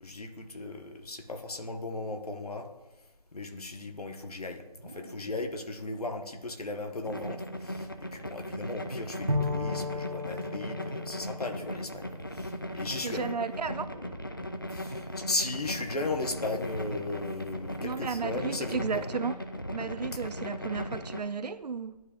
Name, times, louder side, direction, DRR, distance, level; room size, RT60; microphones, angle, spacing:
voice 1, 0.0-2.7 3.3-4.6 4.9-12.1 12.3-12.5 12.7-13.3 14.7-19.1, left 2 dB, 70° left, 5 dB, 1.0 m, -36 dB
sound 1, 4.7-5.4 6.9-7.7 9.0-9.8 11.3-12.0 13.7-14.4 15.9-16.7, right 1 dB, 20° right, 0.7 m, -49 dB
sound 2, 7.0-21.2, equal, 35° left, 0.4 m, -38 dB
Bowed string instrument, 9.3-13.0, left 2 dB, 55° right, 1.0 m, -35 dB
voice 2, 13.0-13.9 17.8-19.4 19.7-22.0, right 5 dB, 90° right, 13 dB, 0.5 m, -34 dB
11.0 x 3.7 x 2.4 m, 1.0 s
figure-of-eight pair, 175°, 20 cm